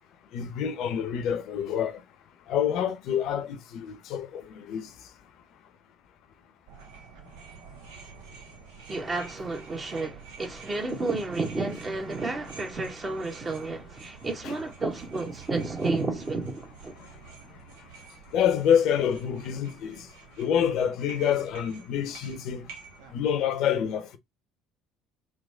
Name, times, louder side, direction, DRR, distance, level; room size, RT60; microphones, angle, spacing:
voice 1, 0.3-2.0 2.5-4.9 18.3-20.1 20.4-22.6 23.1-24.2, left 8 dB, 60° left, 0.7 m, -27 dB
sound 1, 6.7-23.2, right 5 dB, 70° right, 0.9 m, -49 dB
voice 2, 8.9-16.9, right 3 dB, 30° right, 1.3 m, -31 dB
4.0 x 3.0 x 3.3 m
figure-of-eight pair, 55°, 0 cm